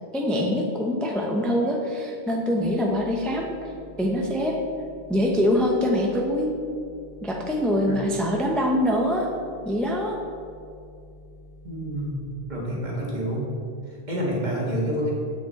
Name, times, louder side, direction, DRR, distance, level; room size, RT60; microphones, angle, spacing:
voice 1, 0.1-3.7 4.0-4.5 5.1-6.5 7.2-9.3 9.6-10.2, left 1 dB, ahead, 0 dB, 0.6 m, -24 dB
sound 1, 2.6-12.4, left 2 dB, 60° left, 1.7 m, -48 dB
voice 2, 11.6-12.2 12.5-13.5 13.9-15.1, equal, 45° right, -4 dB, 1.8 m, -28 dB
7.6 x 6.5 x 4.0 m, 2.4 s
omnidirectional pair, 1.0 m